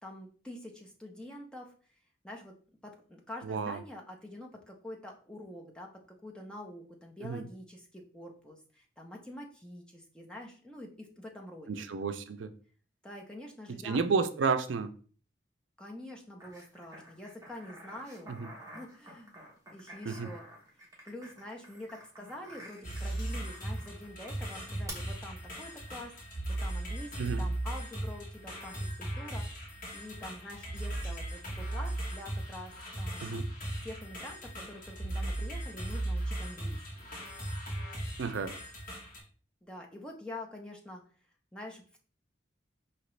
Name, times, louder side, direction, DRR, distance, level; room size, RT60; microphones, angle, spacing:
voice 1, 0.0-1.7 2.2-2.5 2.8-11.8 13.0-14.0 15.8-18.3 18.7-19.4 19.7-20.5 21.0-29.6 29.9-33.4 33.8-37.1 39.6-41.0 41.5-42.0, left 1 dB, 5° left, 0.7 m, -46 dB
voice 2, 3.4-3.8 7.2-7.4 11.7-12.5 13.7-14.9 18.3-18.5 20.1-20.3 27.2-27.4 33.2-33.5 38.2-38.6, right 5 dB, 85° right, 0.4 m, -31 dB
sound 1, 16.4-24.1 24.9-25.0, right 1 dB, 15° right, 1.0 m, -51 dB
sound 2, 22.8-39.2, right 1 dB, 45° left, 1.4 m, -37 dB
4.9 x 2.9 x 3.2 m
head